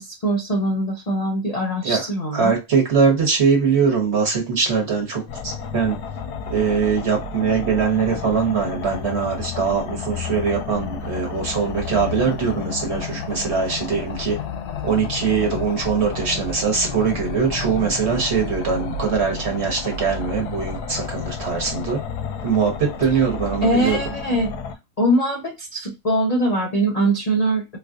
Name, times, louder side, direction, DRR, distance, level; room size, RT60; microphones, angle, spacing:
voice 1, 0.0-2.5 23.6-24.5 25.0-27.8, right 1 dB, 65° left, 0.4 m, -22 dB
voice 2, 2.3-6.0 6.5-14.4 14.8-22.0 22.4-24.0, right 5 dB, 45° right, 1.2 m, -22 dB
sound 1, 5.3-24.7, left 5 dB, 85° left, 1.2 m, -31 dB
4.1 x 2.4 x 2.4 m
omnidirectional pair, 1.7 m